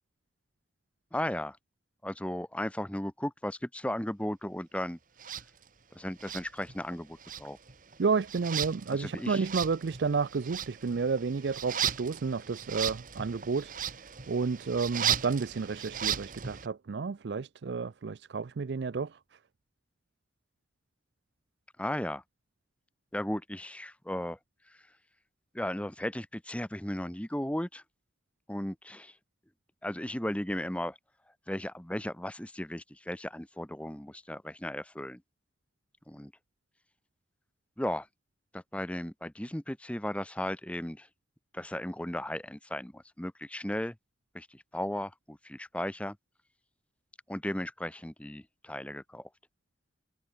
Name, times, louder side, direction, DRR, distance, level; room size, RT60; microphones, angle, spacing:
voice 1, 1.1-1.6 2.0-5.0 5.9-7.6 8.9-9.4 21.8-22.2 23.1-24.4 25.5-27.8 28.5-29.1 29.8-31.0 31.5-35.2 36.1-36.3 37.8-38.1 38.5-41.1 41.5-43.9 44.3-46.2 47.3-49.3, left 1 dB, 5° left, 1.0 m, -35 dB
sound 1, 5.2-5.4 6.2-6.9 7.2-16.7, right 9 dB, 45° right, 1.3 m, -36 dB
voice 2, 8.0-13.7 14.3-19.4, right 5 dB, 70° right, 0.5 m, -31 dB
head